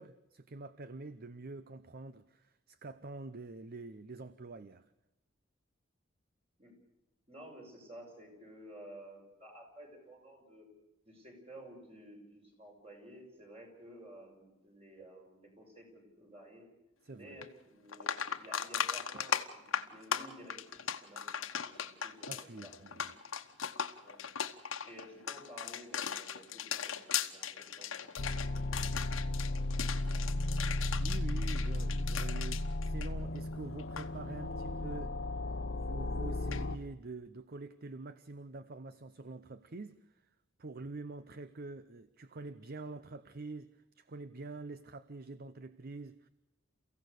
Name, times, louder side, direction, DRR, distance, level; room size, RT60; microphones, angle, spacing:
voice 1, 0.0-4.9 17.0-17.4 19.1-19.2 22.3-23.0 31.0-35.2 35.7-40.1 40.6-46.3, right 3 dB, 50° right, 0.7 m, -46 dB
voice 2, 7.3-10.7 11.0-16.7 17.1-21.3 21.7-23.0 24.0-24.2 24.8-29.7 30.0-30.6, equal, 30° right, 6.3 m, -53 dB
sound 1, 17.4-17.5 17.9-33.5 33.8-34.1 36.5-36.6, left 8 dB, 85° left, 1.3 m, -38 dB
sound 2, 28.2-36.8, left 2 dB, 60° left, 0.9 m, -35 dB
29.5 x 16.0 x 6.7 m
head